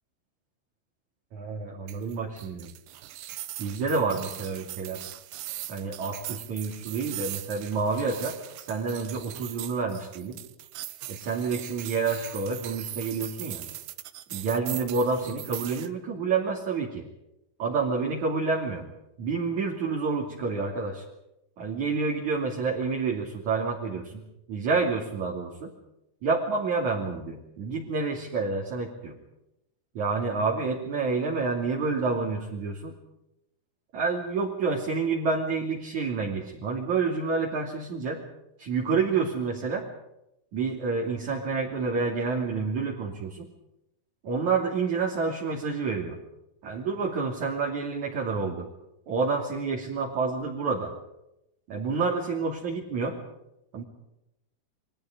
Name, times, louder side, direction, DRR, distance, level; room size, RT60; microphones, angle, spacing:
voice 1, 1.3-2.7 3.6-5.0 5.7-10.4 11.1-13.6 14.3-17.0 17.6-18.8 19.2-21.0 21.6-24.2 24.5-25.7 26.2-29.2 30.0-32.9 33.9-38.2 38.6-39.9 40.5-43.5 44.2-46.2 46.6-48.7 49.1-50.9 51.7-53.2 53.7-53.8, right 4 dB, 45° right, -1 dB, 3.6 m, -28 dB
sound 1, 1.9-15.9, right 14 dB, 75° right, 2.4 m, -40 dB
29.5 x 23.0 x 5.1 m, 0.87 s
omnidirectional pair, 5.8 m